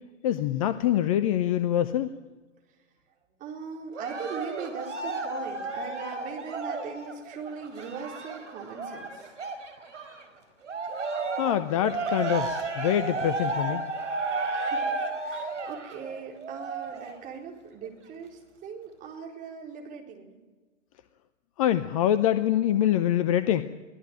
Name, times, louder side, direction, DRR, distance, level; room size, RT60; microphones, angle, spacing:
voice 1, 0.2-2.1 11.4-13.8 21.6-23.6, left 11 dB, 25° left, 13 dB, 0.7 m, -25 dB
voice 2, 3.4-9.3 14.5-14.9 15.2-20.3, right 6 dB, 20° right, 0 dB, 4.3 m, -40 dB
Cheering, 3.9-10.2 10.6-17.2 17.8-17.9, right 3 dB, 65° right, 4.9 m, -33 dB
24.0 x 17.0 x 9.0 m, 1.3 s
figure-of-eight pair, 120°, 39 cm